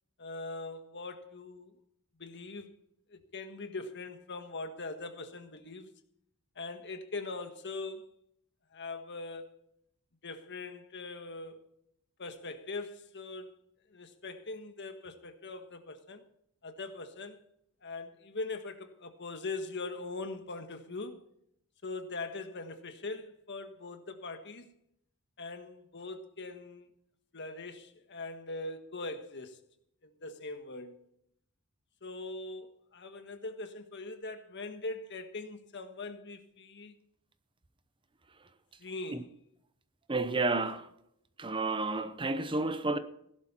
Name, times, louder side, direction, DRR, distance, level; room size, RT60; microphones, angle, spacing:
voice 1, 0.2-1.7 2.2-2.7 3.1-5.9 6.5-8.1 8.7-9.7 10.2-11.6 12.2-13.6 13.9-16.2 16.6-17.4 17.8-21.2 21.8-24.7 25.4-26.9 27.3-29.6 30.0-31.0 32.0-36.9 38.8-39.4, left 3 dB, 55° left, 1.5 m, -41 dB
voice 2, 40.1-40.8 41.4-43.0, right 3 dB, 20° right, 0.8 m, -30 dB
16.5 x 11.5 x 4.3 m
head